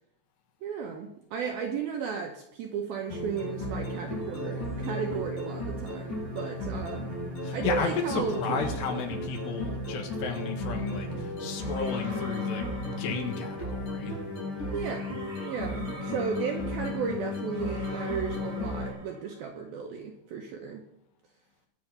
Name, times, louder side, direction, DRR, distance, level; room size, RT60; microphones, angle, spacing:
voice 1, 0.6-7.1 7.5-8.6 9.0-9.1 14.7-15.1 15.4-20.8, right 6 dB, 75° right, 3 dB, 2.2 m, -34 dB
sound 1, 3.1-18.9, left 2 dB, 45° left, 6.5 m, -34 dB
sound 2, 4.2-5.8, left 4 dB, 85° left, 3.6 m, -47 dB
voice 2, 7.4-14.2, left 5 dB, 70° left, 5 dB, 3.4 m, -33 dB
sound 3, 11.6-13.8 14.6-19.5, right 2 dB, 40° right, 6.5 m, -46 dB
21.5 x 7.2 x 5.4 m, 0.80 s
omnidirectional pair, 5.4 m